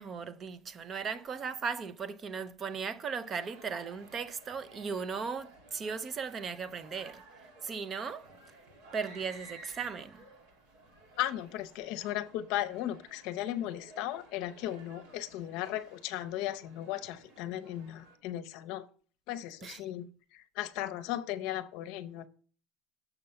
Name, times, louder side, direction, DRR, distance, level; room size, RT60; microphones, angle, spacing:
voice 1, 0.0-7.2 7.6-8.3 8.9-10.3 19.6-19.8, right 5 dB, 30° right, 0.5 m, -37 dB
sound 1, 3.2-18.2, right 2 dB, 85° right, 2.1 m, -56 dB
voice 2, 11.2-18.9 19.3-20.1 20.3-22.3, left 13 dB, 65° left, 0.6 m, -36 dB
6.9 x 5.4 x 5.6 m
cardioid pair, 145°, 0 cm